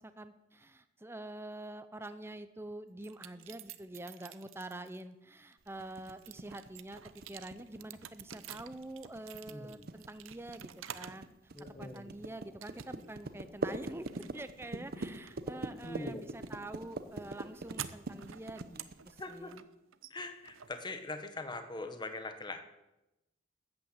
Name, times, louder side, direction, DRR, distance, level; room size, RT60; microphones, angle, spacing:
voice 1, 0.0-11.3 11.8-19.6, right 1 dB, 10° right, 11 dB, 0.6 m, -46 dB
sound 1, 3.0-5.0 5.5-11.3 11.6-12.2 12.6-13.2 13.5-21.4, right 10 dB, 85° right, 0.7 m, -50 dB
sound 2, 5.8-19.5, right 2 dB, 50° right, 0.8 m, -43 dB
voice 2, 9.5-9.9 11.5-12.3 14.7-14.8 15.8-16.5 19.2-19.5 20.1-22.6, left 2 dB, 20° left, 8 dB, 1.2 m, -42 dB
13.5 x 8.7 x 7.9 m, 0.95 s
head